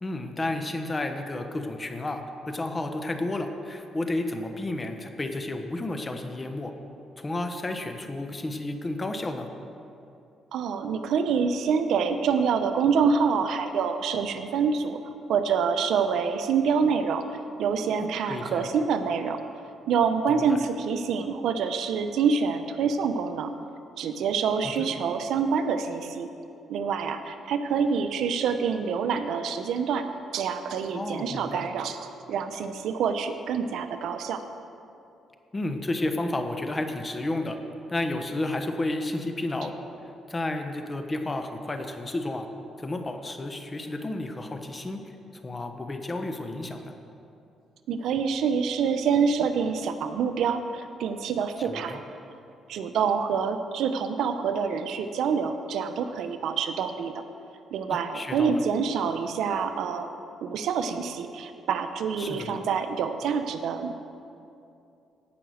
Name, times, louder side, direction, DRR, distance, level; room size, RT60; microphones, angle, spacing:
voice 1, 0.0-6.7 7.2-9.5 18.0-18.7 20.3-20.6 24.6-24.9 30.9-31.6 35.5-37.6 37.9-39.7 40.3-42.5 42.8-46.9 51.6-52.0 57.9-58.6 62.2-62.6, left 2 dB, 25° left, 6 dB, 1.1 m, -32 dB
voice 2, 10.5-15.0 15.3-19.4 19.9-23.5 24.0-26.3 26.7-30.0 30.3-34.4 47.9-52.0 52.7-57.2 57.7-60.1 60.4-64.1, right 6 dB, 75° right, 8 dB, 0.8 m, -26 dB
17.5 x 6.0 x 6.4 m, 2.7 s
cardioid pair, 90°, 0 cm